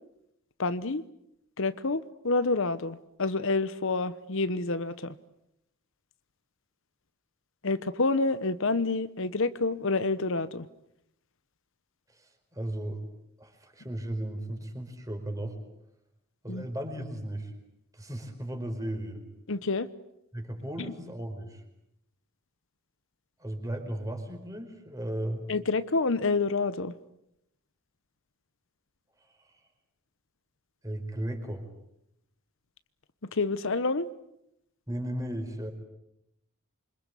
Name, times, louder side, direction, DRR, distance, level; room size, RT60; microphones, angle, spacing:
voice 1, 0.6-1.0 1.6-5.1 7.6-10.7 16.5-16.7 19.5-19.9 20.8-20.9 25.5-26.9 33.3-34.1, left 3 dB, 60° left, 14 dB, 1.0 m, -28 dB
voice 2, 12.1-13.0 13.4-15.6 16.4-17.5 17.9-19.2 20.3-21.6 23.4-25.5 29.4-29.6 30.8-31.7 34.9-35.7, right 1 dB, 15° right, 4 dB, 4.8 m, -35 dB
27.5 x 25.5 x 8.4 m, 0.81 s
head